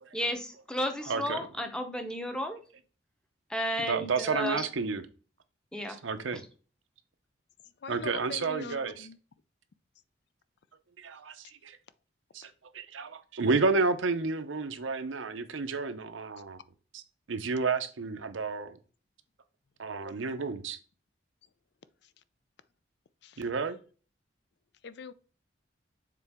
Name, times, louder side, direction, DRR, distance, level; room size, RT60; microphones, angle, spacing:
voice 1, 0.1-2.6 3.5-4.6 5.7-6.0 6.3-6.4, equal, 5° left, 0.7 m, -33 dB
voice 2, 1.1-1.5 3.9-5.0 6.0-6.4 7.9-9.1 11.0-11.8 12.3-16.6 16.9-17.0 17.3-18.8 19.8-20.8 23.4-23.8, right 4 dB, 85° right, 0.7 m, -31 dB
voice 3, 7.8-9.2 23.2-23.4 24.8-25.1, left 5 dB, 60° left, 0.4 m, -42 dB
6.8 x 3.9 x 3.5 m
head